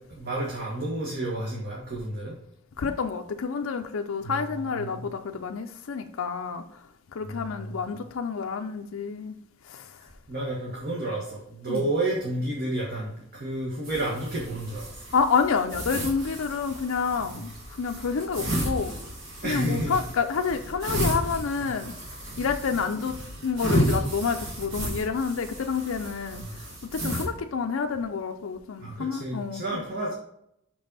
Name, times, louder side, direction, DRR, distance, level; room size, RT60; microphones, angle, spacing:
voice 1, 0.1-2.4 4.2-5.0 7.2-7.9 10.3-15.0 17.3-17.4 19.4-20.0 21.6-21.7 26.3-26.5 28.8-30.1, right 1 dB, 50° right, -4 dB, 1.5 m, -31 dB
voice 2, 2.8-6.6 7.1-9.4 9.7-9.9 11.7-11.8 15.1-17.5 17.8-18.9 19.4-21.9 22.4-23.2 23.4-26.4 26.8-29.8, left 5 dB, 85° left, 6 dB, 0.5 m, -28 dB
sound 1, 13.8-27.2, equal, 85° right, 2.1 m, -32 dB
6.0 x 5.3 x 4.0 m, 0.76 s
head